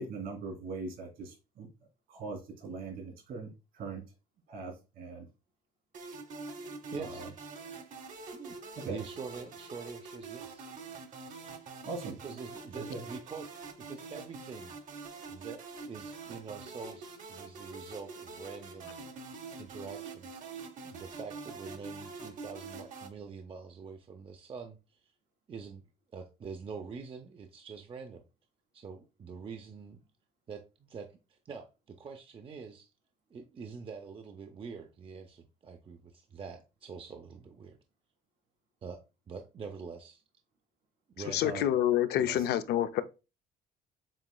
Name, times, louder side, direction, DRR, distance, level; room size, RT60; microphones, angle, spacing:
voice 1, 0.0-1.7 2.1-4.0 4.5-5.3 7.0-7.3 8.8-9.0 11.8-12.2 12.7-13.0 41.4-41.7 42.1-42.5, right 3 dB, 70° right, 2.7 m, -41 dB
sound 1, 5.9-23.1, right 4 dB, 50° right, 1.0 m, -45 dB
voice 2, 6.9-7.2 8.3-8.6 8.8-10.7 12.2-14.7 15.3-18.9 19.6-20.5 20.8-25.0 25.5-25.8 26.1-28.2 28.7-30.0 30.5-32.9 33.3-37.8 38.8-39.0 39.3-40.2 41.1-41.5, right 5 dB, 30° right, 0.6 m, -45 dB
voice 3, 41.2-43.0, left 11 dB, 75° left, 0.5 m, -27 dB
7.3 x 3.0 x 2.2 m
cardioid pair, 110°, 17 cm